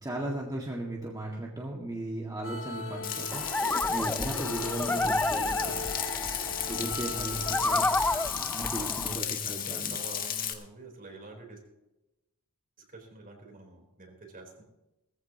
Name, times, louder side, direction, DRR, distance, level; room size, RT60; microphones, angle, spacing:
voice 1, 0.0-5.9 6.7-7.9 8.3-10.0, right 1 dB, 15° right, -2 dB, 2.0 m, -36 dB
sound 1, 2.4-8.3, left 2 dB, 60° left, 1.8 m, -39 dB
Frying (food), 3.0-10.5, left 9 dB, 40° left, 1.6 m, -34 dB
sound 2, 3.3-9.2, left 2 dB, 10° left, 0.4 m, -31 dB
voice 2, 8.7-11.6 12.8-14.6, right 2 dB, 40° right, 3 dB, 3.9 m, -48 dB
19.0 x 15.0 x 3.0 m, 0.96 s
head